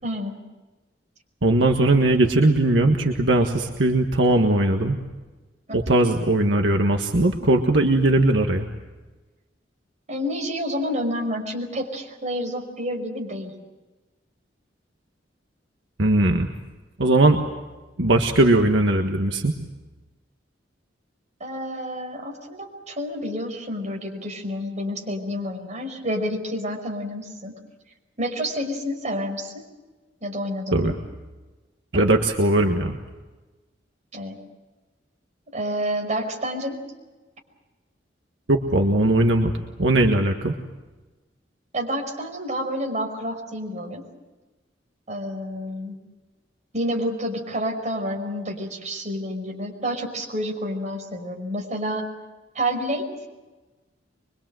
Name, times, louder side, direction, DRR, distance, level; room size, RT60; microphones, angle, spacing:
voice 1, 0.0-0.4 5.7-5.8 10.1-13.5 21.4-27.5 28.2-29.6 30.2-31.0 31.9-32.1 34.1-34.4 35.5-36.8 41.7-44.0 45.1-45.9 46.7-52.1 52.6-53.0, equal, 40° right, 2 dB, 5.4 m, -29 dB
voice 2, 1.4-5.0 5.7-8.7 16.0-16.5 17.0-17.4 18.0-19.5 30.7-31.0 31.9-33.0 38.5-39.5 39.8-40.6, right 2 dB, 75° right, 3 dB, 1.7 m, -19 dB
24.5 x 23.5 x 7.8 m, 1.2 s
head